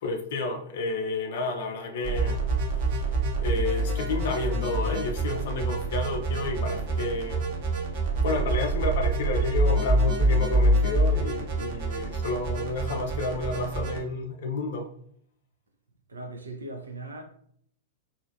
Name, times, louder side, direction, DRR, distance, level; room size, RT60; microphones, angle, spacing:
voice 1, 0.0-2.5 3.4-7.5 8.2-14.9, left 3 dB, 55° left, 0.4 m, -31 dB
sound 1, 2.0-14.0, right 2 dB, 45° right, 0.8 m, -26 dB
voice 2, 16.1-17.2, right 2 dB, 75° right, 0.6 m, -38 dB
3.1 x 2.7 x 2.6 m
figure-of-eight pair, 100°, 0 cm